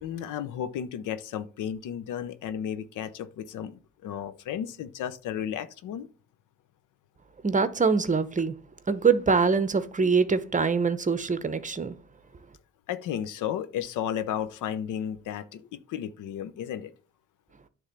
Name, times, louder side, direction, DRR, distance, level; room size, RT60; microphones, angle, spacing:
voice 1, 0.0-6.1 12.9-16.9, left 9 dB, 85° left, 0.8 m, -33 dB
voice 2, 7.4-8.5 8.9-11.9, right 5 dB, 25° right, 0.9 m, -24 dB
9.9 x 3.6 x 6.8 m
cardioid pair, 90°, 30 cm